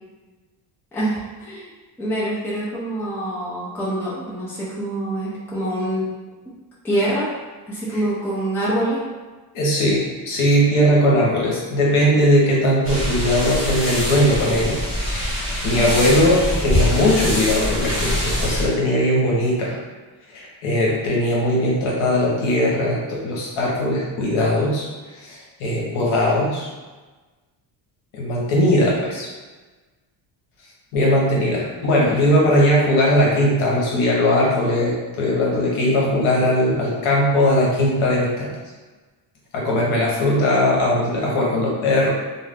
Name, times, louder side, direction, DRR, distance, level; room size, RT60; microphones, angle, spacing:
voice 1, 0.9-1.6 2.0-6.0 6.8-7.3 7.7-9.0 15.7-16.0, right 1 dB, 5° left, -8 dB, 0.5 m, -25 dB
voice 2, 9.5-14.8 15.1-15.3 15.6-19.8 20.3-24.9 25.2-26.7 28.1-29.3 30.9-38.5 39.5-42.1, left 1 dB, 75° left, -4 dB, 1.1 m, -19 dB
sound 1, 12.8-18.7, equal, 25° left, 1.1 m, -24 dB
2.5 x 2.3 x 3.4 m, 1.3 s
cardioid pair, 160°, 48 cm